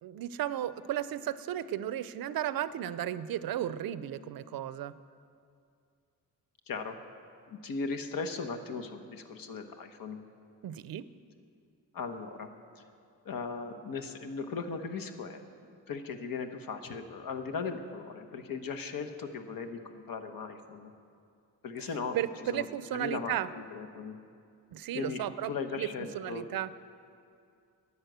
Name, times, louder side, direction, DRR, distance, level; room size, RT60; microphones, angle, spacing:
voice 1, 0.0-4.9 10.6-11.1 21.8-21.9 22.1-23.5 24.7-25.9 26.1-26.7, right 11 dB, 85° right, 15 dB, 0.5 m, -34 dB
voice 2, 7.5-10.2 11.9-12.5 13.2-15.4 15.9-20.9 21.6-22.2 22.5-22.7 22.9-24.2 24.9-26.5, left 4 dB, 75° left, 6 dB, 1.1 m, -38 dB
11.0 x 9.7 x 8.0 m, 2.4 s
cardioid pair, 115°, 34 cm